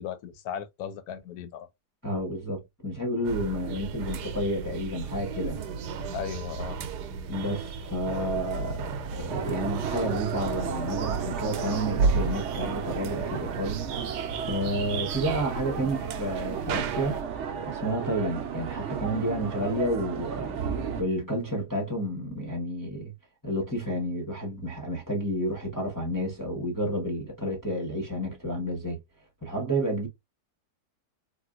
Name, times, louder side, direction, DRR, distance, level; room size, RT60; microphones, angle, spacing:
voice 1, 0.0-1.7 6.1-6.8, left 8 dB, 75° left, 1.1 m, -36 dB
voice 2, 2.0-5.6 7.3-13.8 14.5-17.2 17.7-20.6 21.0-23.1 23.4-29.0 29.4-30.1, right 1 dB, 15° left, 0.8 m, -30 dB
sound 1, 3.2-17.2, right 5 dB, 80° right, 1.2 m, -33 dB
sound 2, 9.3-21.0, right 7 dB, 65° right, 0.7 m, -34 dB
3.7 x 2.4 x 2.4 m
omnidirectional pair, 1.7 m